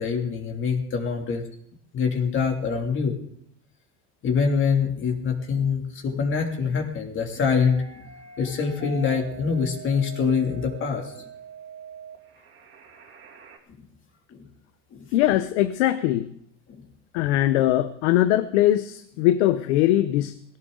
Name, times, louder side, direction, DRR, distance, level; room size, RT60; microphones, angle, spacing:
voice 1, 0.0-1.4 1.9-3.2 4.2-7.8 8.4-11.2 14.3-14.5 14.9-15.1 16.7-16.8 17.3-17.4, left 5 dB, 35° left, 2 dB, 2.8 m, -25 dB
sound 1, 7.5-13.6, right 5 dB, 35° right, 2.9 m, -43 dB
voice 2, 15.1-16.3 17.1-20.6, left 13 dB, 80° left, 11 dB, 0.9 m, -21 dB
19.0 x 16.0 x 4.0 m, 0.69 s
supercardioid pair, 135°, 33 cm